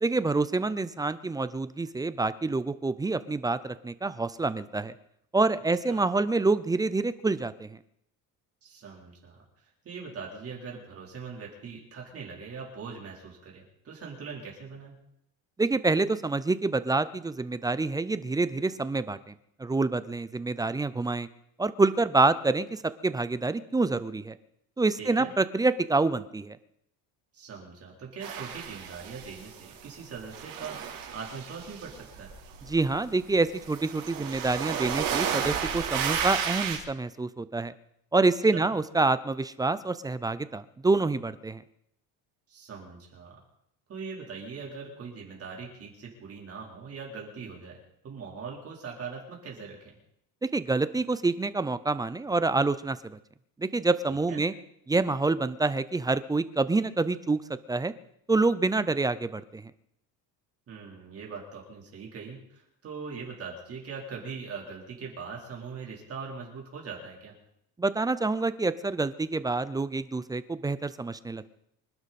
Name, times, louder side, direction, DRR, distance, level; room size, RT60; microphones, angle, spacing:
voice 1, 0.0-4.9 5.3-7.8 15.6-21.3 21.6-24.4 24.8-26.6 32.7-37.7 38.1-41.6 50.4-53.2 53.6-54.5 54.9-57.4 57.7-57.9 58.3-59.7 67.8-71.5, right 3 dB, 10° right, 14 dB, 0.5 m, -27 dB
voice 2, 8.6-9.5 9.8-15.0 25.0-25.3 27.3-32.3 38.5-38.7 42.5-43.4 43.9-50.0 54.1-54.4 60.7-67.3, right 5 dB, 40° right, -1 dB, 3.7 m, -41 dB
sound 1, 28.2-29.8 30.1-36.8, right 8 dB, 65° right, 3.9 m, -33 dB
25.0 x 12.0 x 4.2 m, 0.74 s
cardioid pair, 150°, 36 cm